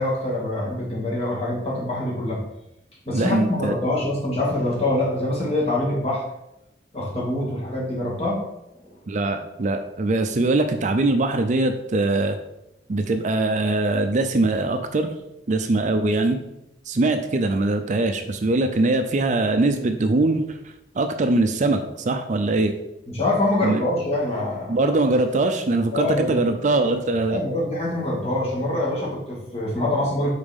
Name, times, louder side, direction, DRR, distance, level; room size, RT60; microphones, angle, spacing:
voice 1, 0.0-2.4 3.0-6.3 6.9-8.4 8.8-9.0 23.1-24.8 25.9-26.4 27.3-30.3, left 1 dB, 35° left, -5 dB, 2.1 m, -25 dB
voice 2, 3.1-3.7 9.1-12.4 12.9-15.1 15.5-16.4 16.9-20.6 21.0-22.7 23.6-23.8 24.7-27.4, right 2 dB, 40° right, 7 dB, 0.4 m, -22 dB
5.2 x 4.1 x 5.2 m, 0.86 s
head